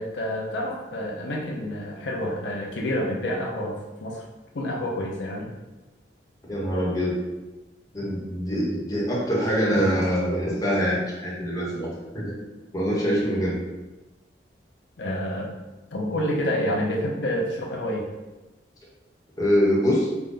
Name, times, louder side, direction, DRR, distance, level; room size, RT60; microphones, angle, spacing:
voice 1, 0.0-4.2 4.5-5.5 15.0-15.5 15.9-18.1, equal, 85° left, -1 dB, 0.6 m, -28 dB
voice 2, 6.5-7.2 7.9-11.9 12.1-12.3 12.7-13.6 19.4-20.1, equal, 20° left, -6 dB, 1.0 m, -24 dB
3.9 x 2.2 x 3.7 m, 1.1 s
head